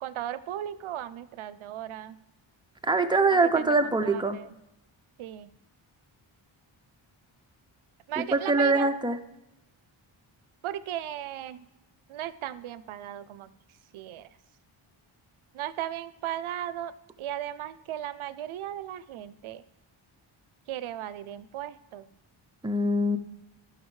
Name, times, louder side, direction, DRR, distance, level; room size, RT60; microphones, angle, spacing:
voice 1, 0.0-2.2 3.3-4.5 5.2-5.5 8.1-8.9 10.6-11.7 12.1-13.5 13.9-14.3 15.5-19.6 20.7-22.1, right 11 dB, 75° right, 15 dB, 0.6 m, -36 dB
voice 2, 2.8-4.4 8.2-9.2 22.6-23.2, right 2 dB, 10° right, 6 dB, 0.4 m, -23 dB
15.0 x 5.9 x 3.2 m, 0.93 s
wide cardioid pair, 165°, 49 cm